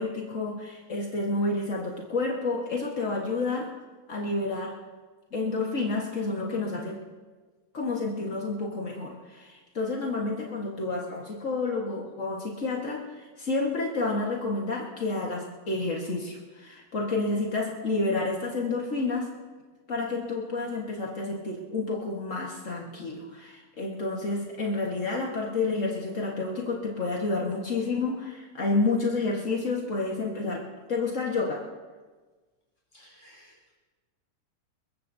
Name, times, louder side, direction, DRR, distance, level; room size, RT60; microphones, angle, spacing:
voice 1, 0.0-3.7 4.1-4.8 5.3-7.0 7.7-19.3 19.9-31.6, left 3 dB, 55° left, -2 dB, 0.8 m, -30 dB
voice 2, 32.9-33.8, equal, 10° left, -1 dB, 3.8 m, -56 dB
22.0 x 22.0 x 2.7 m, 1.3 s
omnidirectional pair, 3.8 m